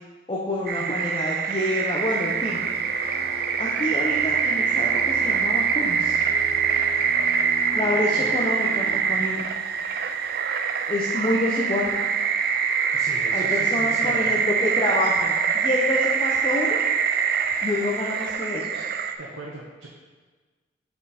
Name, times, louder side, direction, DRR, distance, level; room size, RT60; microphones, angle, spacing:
voice 1, 0.3-2.6 3.6-6.2 7.7-9.4 10.9-11.9 13.3-16.8 17.6-18.8, left 1 dB, 25° left, -3 dB, 0.7 m, -27 dB
sound 1, 0.7-19.1, right 7 dB, 50° right, 0.4 m, -24 dB
sound 2, 1.9-18.3, equal, 25° right, 1.9 m, -49 dB
sound 3, 2.3-9.0, right 1 dB, ahead, 1.4 m, -41 dB
voice 2, 12.9-14.4 19.2-19.9, right 2 dB, 90° right, -4 dB, 0.9 m, -39 dB
7.5 x 4.4 x 4.2 m, 1.4 s
head